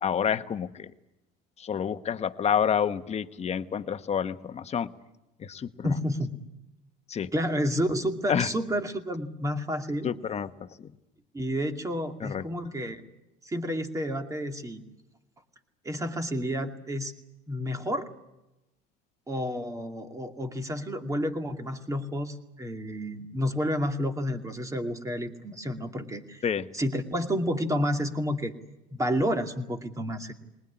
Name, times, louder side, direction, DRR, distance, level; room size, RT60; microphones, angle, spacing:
voice 1, 0.0-0.9 1.6-4.9 5.4-5.9 7.1-7.3 8.3-8.5 10.0-10.5 10.8-10.9 12.2-12.4 26.4-26.7, left 8 dB, 30° left, 10 dB, 1.2 m, -28 dB
voice 2, 5.8-6.3 7.3-10.1 11.3-13.0 13.4-14.8 15.8-17.1 17.5-18.1 19.3-26.4 26.7-28.5 28.9-30.3, equal, 15° right, 5 dB, 2.4 m, -30 dB
20.0 x 20.0 x 9.9 m, 0.93 s
supercardioid pair, 105°, 21 cm